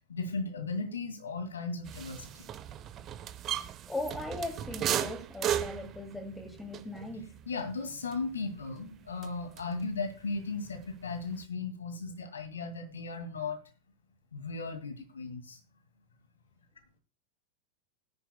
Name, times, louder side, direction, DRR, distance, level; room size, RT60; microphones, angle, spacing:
voice 1, 0.1-2.5 7.5-13.6 14.3-15.6, left 3 dB, 70° left, 2.1 m, -36 dB
sound 1, 1.9-10.0 10.3-11.4, right 10 dB, 30° right, 0.8 m, -37 dB
voice 2, 3.9-7.3, left 2 dB, 5° left, 2.3 m, -38 dB
18.0 x 10.0 x 2.2 m
figure-of-eight pair, 90°, 0 cm